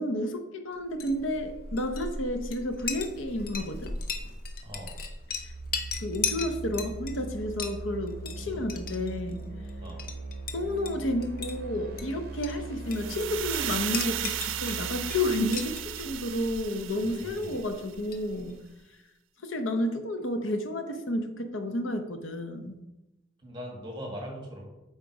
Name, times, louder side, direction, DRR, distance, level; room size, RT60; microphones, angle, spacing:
voice 1, 0.0-3.9 5.4-5.5 6.0-9.4 10.5-18.6 19.4-22.8, left 1 dB, 85° left, 7 dB, 0.8 m, -31 dB
Chink clink, 0.8-18.7, left 5 dB, 45° left, 0.7 m, -39 dB
voice 2, 4.6-5.0 8.4-8.6 9.8-10.0 17.0-17.6 23.4-24.6, equal, 25° right, 0 dB, 1.7 m, -41 dB
sound 1, 5.1-16.9, right 3 dB, 50° right, 0.7 m, -41 dB
sound 2, 12.9-17.9, right 12 dB, 85° right, 0.5 m, -35 dB
7.9 x 4.0 x 4.8 m, 0.98 s
head